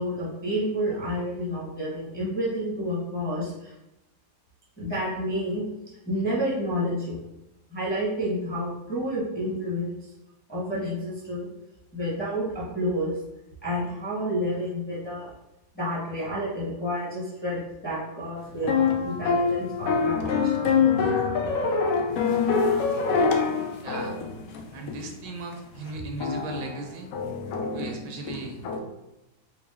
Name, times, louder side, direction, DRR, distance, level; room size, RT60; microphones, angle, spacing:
voice 1, 0.0-3.7 4.8-5.6 6.1-7.2 7.7-10.0 10.5-11.5 11.9-13.2 13.6-15.3 15.7-20.5, equal, 10° left, -7 dB, 0.7 m, -29 dB
sound 1, 18.6-25.1 25.5-25.6 26.2-28.8, left 5 dB, 90° left, 0.7 m, -25 dB
voice 2, 23.8-24.2 24.7-27.1 27.6-28.6, right 3 dB, 75° right, 3 dB, 1.2 m, -37 dB
4.4 x 2.0 x 3.4 m, 0.91 s
omnidirectional pair, 2.0 m